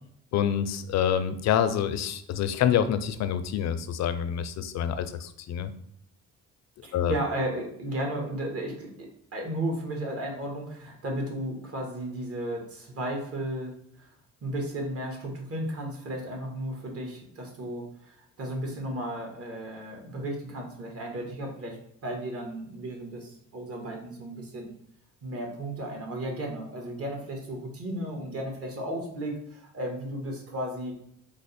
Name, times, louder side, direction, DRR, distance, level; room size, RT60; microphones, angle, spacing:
voice 1, 0.3-5.7 6.9-7.1, left 9 dB, 60° left, 10 dB, 0.4 m, -27 dB
voice 2, 6.8-9.1 9.3-13.7 14.0-14.1 14.4-21.8 22.0-24.7 25.2-30.9, right 1 dB, 50° right, 1 dB, 1.2 m, -34 dB
3.3 x 2.0 x 4.1 m, 0.70 s
cardioid pair, 90°, 30 cm